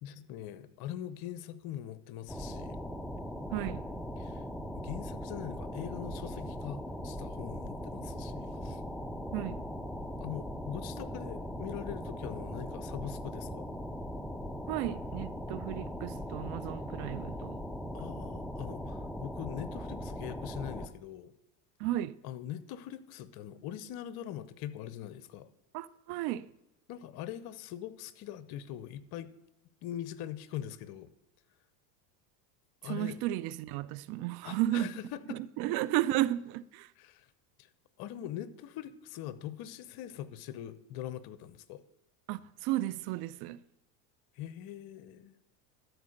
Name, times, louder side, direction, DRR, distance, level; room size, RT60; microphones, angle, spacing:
voice 1, 0.0-2.8 4.2-4.4 4.8-8.8 10.2-13.8 17.9-21.3 22.2-25.5 26.9-29.3 29.8-31.1 32.8-33.2 34.4-35.4 37.0-37.3 37.6-37.7 38.0-41.8 44.4-45.4, left 11 dB, 55° left, 0.9 m, -42 dB
sound 1, 2.3-20.9, equal, ahead, 0.4 m, -39 dB
voice 2, 3.5-3.9 9.3-9.6 14.7-17.6 21.8-22.2 25.7-26.5 32.8-35.0 35.3-36.9 42.3-43.6, right 14 dB, 55° right, 0.5 m, -33 dB
12.5 x 4.7 x 6.5 m
supercardioid pair, 100°, 46 cm